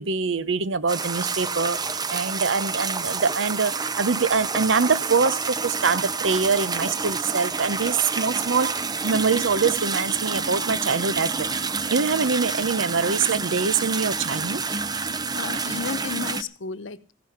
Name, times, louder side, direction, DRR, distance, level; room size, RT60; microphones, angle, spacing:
voice 1, 0.0-11.5 11.9-14.6, right 5 dB, 85° right, 0.8 m, -24 dB
sound 1, 0.9-16.4, right 4 dB, 20° right, 0.6 m, -28 dB
voice 2, 14.9-17.1, left 4 dB, 85° left, 1.0 m, -34 dB
15.5 x 10.5 x 5.9 m
head